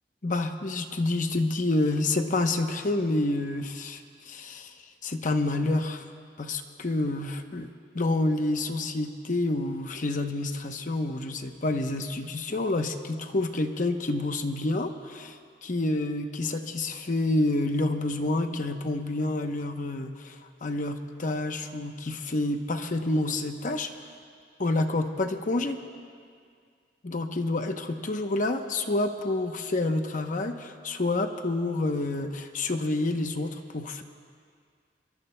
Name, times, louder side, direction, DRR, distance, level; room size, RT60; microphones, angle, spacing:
voice 1, 0.2-4.7 5.0-6.0 6.4-7.7 7.9-23.9 24.6-25.8 27.0-34.0, left 2 dB, 50° left, 6 dB, 0.8 m, -28 dB
25.5 x 23.0 x 2.2 m, 2.1 s
head